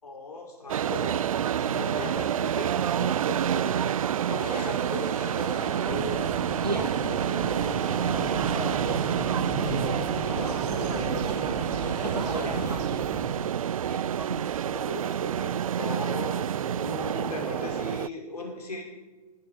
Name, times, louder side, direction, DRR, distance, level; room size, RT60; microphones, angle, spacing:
voice 1, 0.0-1.2 1.6-4.0 4.3-5.8 10.1-11.1 14.6-18.8, left 2 dB, 75° left, 0 dB, 5.7 m, -38 dB
sound 1, 0.7-18.1, right 9 dB, 60° right, 0.4 m, -28 dB
sound 2, 4.4-12.8, left 1 dB, 90° left, 1.7 m, -38 dB
sound 3, 5.9-13.3, right 4 dB, 35° right, 2.5 m, -34 dB
voice 2, 6.6-7.0 8.8-9.4 11.7-12.9 13.8-14.5, right 2 dB, 85° right, 5 dB, 1.5 m, -35 dB
22.0 x 11.5 x 5.1 m, 1.3 s
figure-of-eight pair, 115°, 20 cm